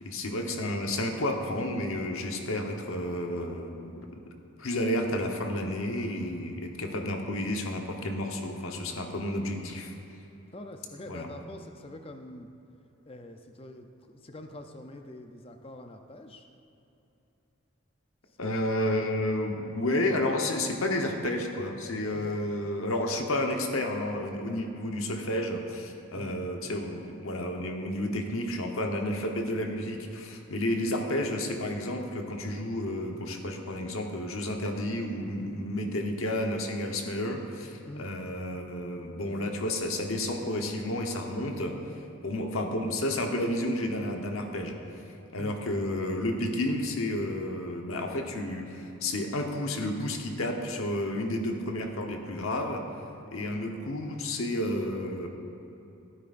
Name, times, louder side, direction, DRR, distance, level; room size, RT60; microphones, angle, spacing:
voice 1, 0.0-3.9 4.6-9.9 11.1-11.3 18.4-44.8 45.3-52.8 53.3-55.3, left 1 dB, 80° left, 2 dB, 1.1 m, -31 dB
voice 2, 10.5-12.5 13.1-16.5 18.4-18.7 22.1-22.4 26.1-26.3 27.0-27.1 37.9-38.1 45.4-45.6, left 1 dB, 25° left, 5 dB, 0.6 m, -45 dB
15.5 x 9.6 x 2.6 m, 3.0 s
head